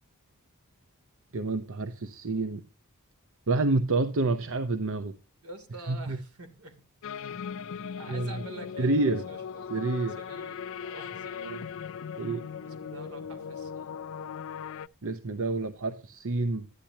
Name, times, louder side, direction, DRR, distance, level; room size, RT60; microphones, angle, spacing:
voice 1, 1.3-2.6 3.5-5.1 5.9-6.2 8.1-8.4 8.8-9.2 9.7-10.2 11.4-11.6 12.2-12.4 15.0-16.7, right 2 dB, 65° right, 10 dB, 0.8 m, -28 dB
voice 2, 5.4-6.7 8.0-9.7 10.2-11.5 12.6-13.9, right 3 dB, 85° right, 7 dB, 2.8 m, -46 dB
sound 1, 7.0-14.9, left 7 dB, 65° left, 0.4 m, -39 dB
13.0 x 10.5 x 2.9 m, 0.34 s
head